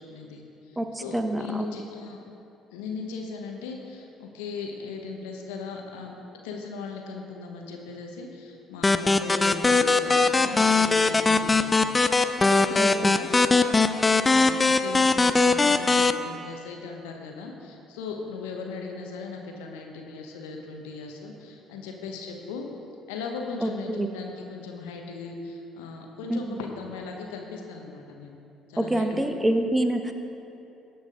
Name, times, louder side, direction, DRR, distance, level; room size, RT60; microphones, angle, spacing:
voice 1, 0.1-2.2 2.7-6.1 6.4-11.8 12.4-22.7 23.1-28.4 28.7-29.2, left 4 dB, 75° left, 2 dB, 1.0 m, -38 dB
voice 2, 0.8-1.8 12.8-13.3 23.6-24.1 26.3-26.6 28.8-30.1, right 1 dB, 10° right, 6 dB, 0.9 m, -27 dB
sound 1, 8.8-16.1, left 3 dB, 25° left, 0.4 m, -21 dB
17.5 x 5.9 x 3.7 m, 2.8 s
figure-of-eight pair, 50°, 0 cm